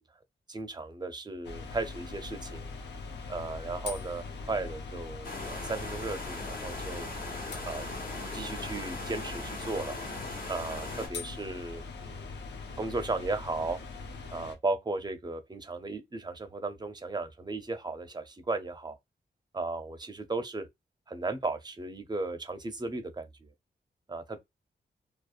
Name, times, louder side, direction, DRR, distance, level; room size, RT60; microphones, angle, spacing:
voice 1, 0.5-2.7 3.3-7.1 7.6-7.9 8.2-10.0 10.5-12.4 12.8-13.8 14.3-19.0 19.5-20.7 21.1-23.5 24.1-24.4, right 3 dB, 25° right, 0.5 m, -35 dB
sound 1, 1.4-14.6, left 4 dB, 85° left, 0.6 m, -41 dB
sound 2, 5.2-11.1, left 2 dB, 55° left, 0.8 m, -39 dB
2.6 x 2.0 x 2.3 m
cardioid pair, 75°, 18 cm